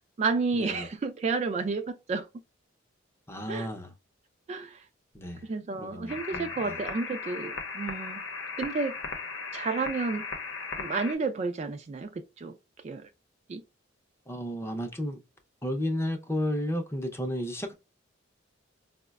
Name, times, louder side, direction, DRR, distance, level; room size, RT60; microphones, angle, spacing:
voice 1, 0.2-2.3 3.5-3.7 4.5-4.9 5.4-8.2 8.6-8.9 9.5-10.3 10.8-12.6 12.8-13.1 13.5-13.6, right 4 dB, 35° right, 0.3 m, -31 dB
voice 2, 3.3-3.9 5.1-5.4 5.8-6.7 14.3-15.2 15.6-17.7, left 1 dB, 15° left, 0.5 m, -33 dB
sound 1, 6.1-11.1, left 4 dB, 80° left, 0.7 m, -37 dB
4.7 x 2.1 x 2.3 m
head